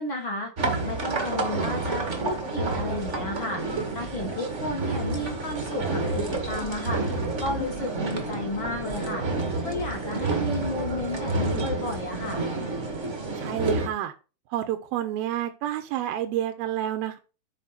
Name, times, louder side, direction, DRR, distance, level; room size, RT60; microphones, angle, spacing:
voice 1, 0.0-3.6 3.9-9.3 9.6-12.5, left 2 dB, 40° left, 2.2 m, -33 dB
sound 1, 0.6-13.9, right 3 dB, 35° right, 1.1 m, -29 dB
voice 2, 13.3-14.1 14.5-17.2, right 12 dB, 80° right, 2.7 m, -29 dB
12.5 x 5.0 x 5.8 m
omnidirectional pair, 4.5 m